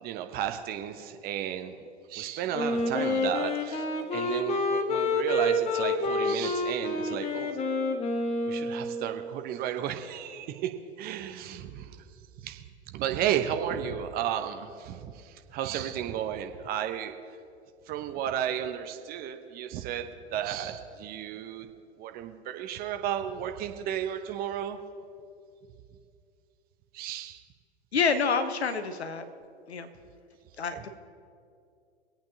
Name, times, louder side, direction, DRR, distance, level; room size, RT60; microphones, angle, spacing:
voice 1, 0.0-3.9 4.1-7.6 8.5-10.7 11.0-12.0 12.4-17.1 17.9-21.7 22.0-24.8 26.9-27.4, right 10 dB, 30° right, 6 dB, 0.8 m, -33 dB
Wind instrument woodwind instrument, 2.5-9.2, left 2 dB, 20° left, 1.0 m, -28 dB
voice 2, 27.9-29.2 29.7-29.9 30.6-30.9, left 5 dB, 75° left, 9 dB, 1.1 m, -27 dB
26.0 x 8.7 x 2.8 m, 2.4 s
figure-of-eight pair, 100°, 33 cm